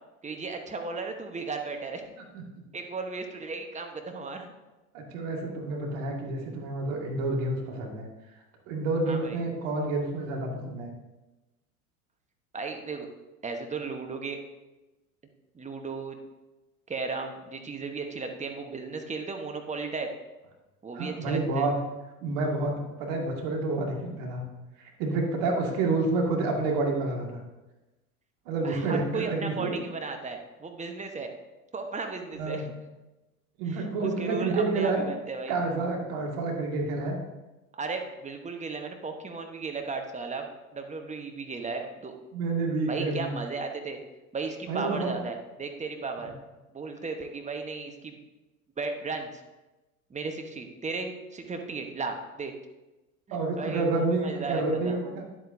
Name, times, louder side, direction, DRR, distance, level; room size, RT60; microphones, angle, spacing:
voice 1, 0.2-2.0 2.7-4.5 9.1-9.4 12.5-13.1 13.4-14.4 15.5-16.2 16.9-20.1 20.8-21.7 28.6-31.3 31.7-32.7 33.7-35.5 37.7-42.1 42.9-44.0 44.3-46.4 46.7-48.2 48.8-49.3 50.1-52.5 53.3-55.0, right 4 dB, 15° right, 4 dB, 1.1 m, -35 dB
voice 2, 4.9-8.1 8.7-10.9 20.9-21.7 22.2-24.4 24.8-27.4 28.5-29.8 32.4-32.7 33.6-35.0 35.5-37.2 42.3-43.4 44.7-45.2 46.2-46.3 53.3-55.2, right 3 dB, 60° right, 1 dB, 2.1 m, -29 dB
10.5 x 8.1 x 2.7 m, 1.1 s
hypercardioid pair, 85°, 44 cm